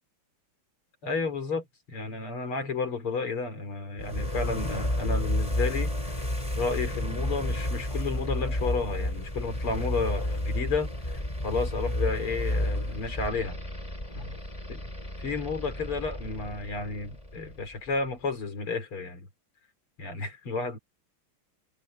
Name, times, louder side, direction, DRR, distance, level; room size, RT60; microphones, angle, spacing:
voice 1, 1.0-6.1 6.6-13.6 14.1-14.3 14.7-14.8 15.2-19.3 20.0-20.8, left 4 dB, 85° left, 5.0 m, -32 dB
sound 1, 4.0-17.9, left 1 dB, 15° left, 5.1 m, -31 dB
omnidirectional pair, 2.3 m